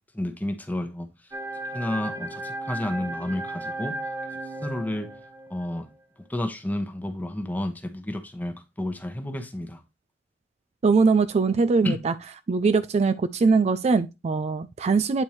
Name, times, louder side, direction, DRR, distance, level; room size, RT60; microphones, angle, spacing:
voice 1, 0.1-1.1 1.7-3.9 4.6-5.1 5.5-5.9 6.3-9.8 11.8-12.0, left 1 dB, 10° left, 1.0 m, -31 dB
sound 1, 1.3-5.8, right 1 dB, 20° right, 1.0 m, -35 dB
voice 2, 10.8-12.1 12.5-15.2, right 4 dB, 35° right, 0.3 m, -21 dB
8.8 x 4.4 x 3.1 m
head